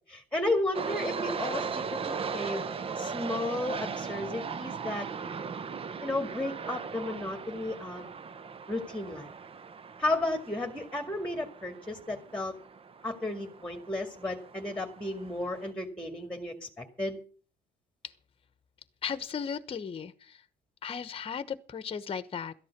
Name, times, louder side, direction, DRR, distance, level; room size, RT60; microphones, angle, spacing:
voice 1, 0.1-2.6 3.0-5.1 6.0-8.1 8.7-9.3 10.0-12.5 13.0-17.2, left 2 dB, 5° left, 5 dB, 2.0 m, -33 dB
sound 1, 0.7-15.7, right 5 dB, 35° right, 0.8 m, -38 dB
voice 2, 19.0-20.4 20.8-22.5, left 6 dB, 35° left, 13 dB, 1.1 m, -36 dB
13.5 x 11.0 x 6.0 m, 0.40 s
cardioid pair, 110°, 17 cm